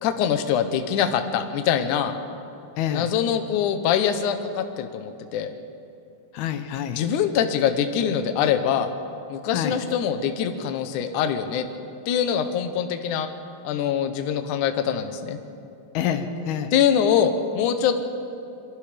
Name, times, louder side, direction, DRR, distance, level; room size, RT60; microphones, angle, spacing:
voice 1, 0.0-2.1 2.9-5.5 7.0-8.9 9.3-11.7 12.1-13.3 13.6-15.4 16.7-18.0, left 8 dB, 65° left, 7 dB, 2.3 m, -23 dB
voice 2, 2.8-3.1 6.3-7.0 9.5-9.8 15.9-16.7, left 9 dB, 90° left, 8 dB, 3.1 m, -27 dB
27.0 x 23.5 x 5.2 m, 2.7 s
omnidirectional pair, 4.4 m